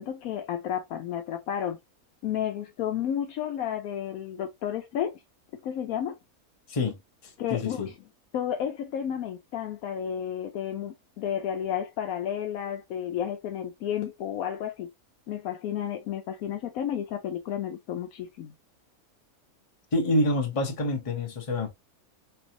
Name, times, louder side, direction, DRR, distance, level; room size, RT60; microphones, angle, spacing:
voice 1, 0.0-1.8 2.2-5.2 5.6-6.2 7.4-8.1 8.3-14.9 15.3-18.5, left 9 dB, 75° left, 1.0 m, -32 dB
voice 2, 7.2-7.9 19.9-21.7, left 1 dB, 25° left, 0.8 m, -27 dB
4.4 x 2.5 x 2.8 m
omnidirectional pair, 1.5 m